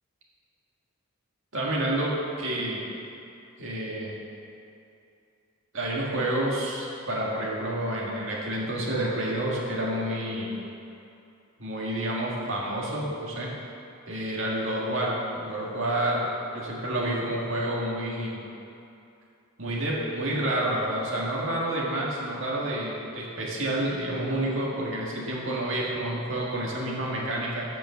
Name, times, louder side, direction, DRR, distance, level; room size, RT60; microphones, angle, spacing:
voice 1, 1.5-2.8 3.6-4.1 5.7-10.6 11.6-13.5 14.1-16.3 16.5-18.4 19.6-27.7, right 1 dB, 65° right, -4 dB, 1.8 m, -29 dB
8.5 x 6.2 x 6.2 m, 2.7 s
head